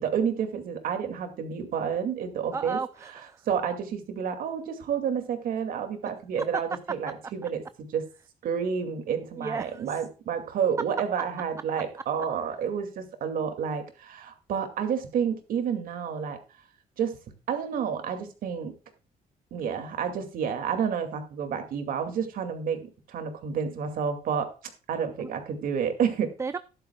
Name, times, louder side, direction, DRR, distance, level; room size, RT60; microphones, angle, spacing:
voice 1, 0.0-2.8 3.5-8.0 8.4-16.4 17.0-17.2 17.5-18.7 19.5-24.5 24.9-26.3, right 7 dB, 70° right, 2.3 m, -30 dB
voice 2, 2.5-3.4 6.4-6.5 9.4-10.0 25.2-25.3 26.4-26.6, right 4 dB, 20° right, 0.4 m, -33 dB
13.0 x 11.5 x 2.3 m
cardioid pair, 140°, 15 cm